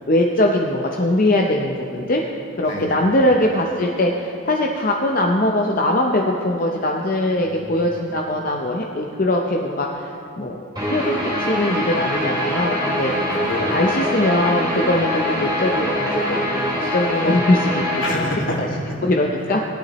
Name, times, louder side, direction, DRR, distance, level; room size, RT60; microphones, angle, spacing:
voice 1, 0.0-2.2 2.6-10.6 10.9-13.1 13.7-17.8 18.2-18.3 19.0-19.6, left 1 dB, 45° left, 0 dB, 0.6 m, -21 dB
voice 2, 2.6-3.0 7.4-7.9 13.0-14.2 18.0-19.0, left 1 dB, 70° left, -2 dB, 2.1 m, -29 dB
Guitar, 10.8-18.1, left 1 dB, 20° right, 2.8 m, -23 dB
17.5 x 11.5 x 3.1 m, 2.6 s
head